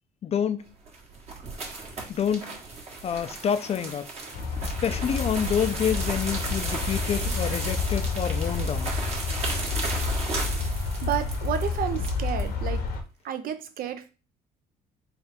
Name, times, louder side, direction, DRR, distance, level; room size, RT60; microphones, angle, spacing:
voice 1, 0.2-0.6 2.1-2.6 3.0-4.1 4.6-8.9, left 8 dB, 40° left, 0.4 m, -28 dB
sound 1, 0.7-12.5, right 3 dB, 40° right, 1.2 m, -35 dB
sound 2, 4.3-13.0, left 4 dB, 65° left, 0.9 m, -29 dB
voice 2, 11.0-12.8 13.2-14.1, right 9 dB, 60° right, 0.5 m, -31 dB
3.4 x 2.4 x 4.4 m
cardioid pair, 110°, 17 cm